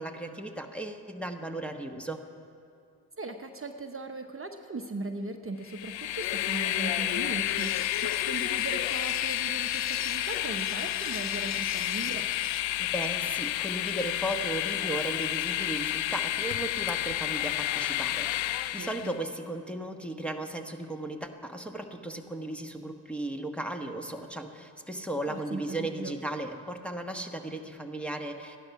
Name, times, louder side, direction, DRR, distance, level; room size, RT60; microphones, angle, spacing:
voice 1, 0.0-2.2 12.8-28.6, right 1 dB, 5° left, 2 dB, 1.1 m, -36 dB
voice 2, 3.2-12.2 18.8-19.2 25.3-26.2, right 3 dB, 30° right, 5 dB, 0.9 m, -38 dB
Train, 5.7-19.1, left 14 dB, 85° left, 0.5 m, -30 dB
sound 1, 7.6-12.6, left 6 dB, 35° left, 0.8 m, -43 dB
14.5 x 11.5 x 5.8 m, 2.5 s
supercardioid pair, 50°, 45 cm